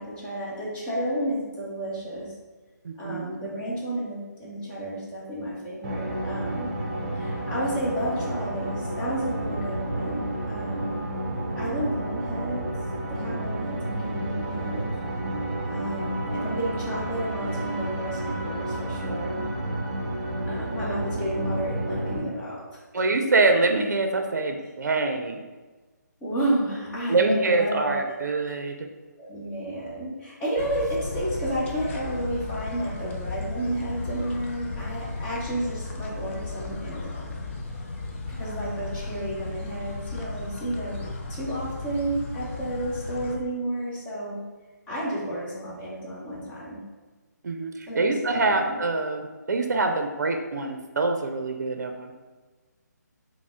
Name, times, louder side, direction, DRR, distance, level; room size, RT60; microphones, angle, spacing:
voice 1, 0.0-2.3 3.0-6.7 7.2-11.0 11.6-12.7 13.1-14.9 15.7-19.4 20.5-23.0 26.2-28.4 29.2-37.4 38.4-41.0 41.3-44.4 44.9-46.8 47.9-48.8, right 1 dB, 10° left, -7 dB, 0.8 m, -31 dB
voice 2, 2.8-3.4 22.9-25.4 27.1-28.9 47.4-52.1, right 3 dB, 65° right, 5 dB, 0.5 m, -25 dB
sound 1, 5.8-22.2, right 1 dB, 30° right, 0.7 m, -31 dB
sound 2, 30.6-43.4, left 3 dB, 40° left, 0.5 m, -35 dB
4.8 x 2.0 x 3.6 m, 1.3 s
figure-of-eight pair, 155°, 10 cm